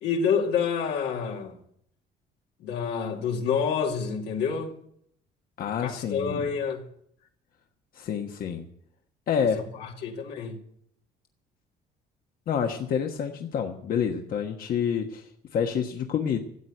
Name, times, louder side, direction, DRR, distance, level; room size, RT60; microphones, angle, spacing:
voice 1, 0.0-1.6 2.6-4.7 5.8-6.8 9.8-10.6, left 6 dB, 80° left, 2.5 m, -28 dB
voice 2, 5.6-6.5 7.9-8.7 9.3-9.6 12.5-16.4, left 7 dB, 60° left, 1.4 m, -28 dB
14.0 x 8.3 x 9.0 m
cardioid pair, 110°, 17 cm